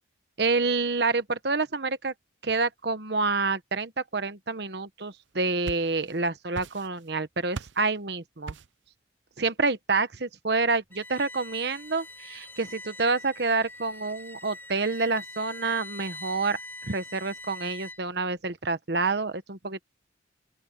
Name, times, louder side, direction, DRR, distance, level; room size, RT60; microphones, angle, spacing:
voice 1, 0.4-2.1 2.4-8.6 9.4-19.8, right 3 dB, 60° right, 1.1 m, -28 dB
sound 1, 5.3-6.2 6.5-7.1 7.5-7.9 8.5-8.9, right 4 dB, 80° right, 0.7 m, -40 dB
Bowed string instrument, 10.9-18.2, left 2 dB, 10° left, 5.1 m, -43 dB
open air
head